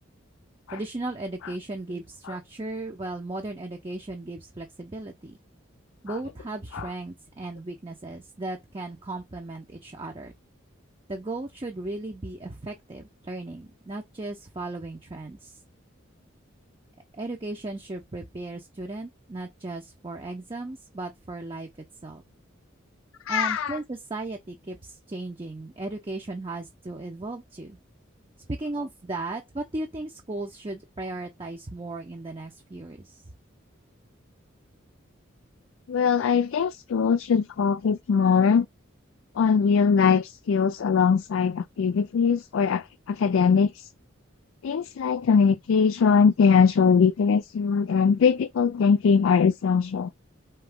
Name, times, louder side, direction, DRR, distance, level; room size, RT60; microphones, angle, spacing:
voice 1, 0.7-5.4 6.0-10.3 11.1-15.5 17.1-21.7 22.0-22.2 23.3-27.8 28.5-33.2, right 2 dB, 25° right, 0.6 m, -36 dB
voice 2, 23.3-23.8 35.9-38.7 39.4-43.9 44.6-50.1, left 6 dB, 80° left, 0.4 m, -21 dB
4.4 x 2.9 x 3.5 m
head